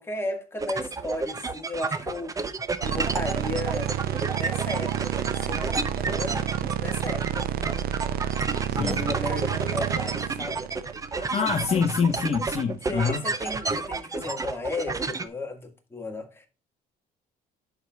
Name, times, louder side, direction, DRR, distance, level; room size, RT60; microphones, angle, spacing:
voice 1, 0.0-2.4 2.8-3.9 4.3-6.5 6.8-7.7 8.6-10.6 12.8-16.5, left 2 dB, 15° left, 1.8 m, -34 dB
sound 1, 0.6-15.3, right 4 dB, 20° right, 0.6 m, -31 dB
sound 2, 2.8-12.0, right 10 dB, 65° right, 0.5 m, -30 dB
voice 2, 11.2-13.2, left 6 dB, 40° left, 0.9 m, -26 dB
11.0 x 4.6 x 2.3 m
cardioid pair, 110°, 17 cm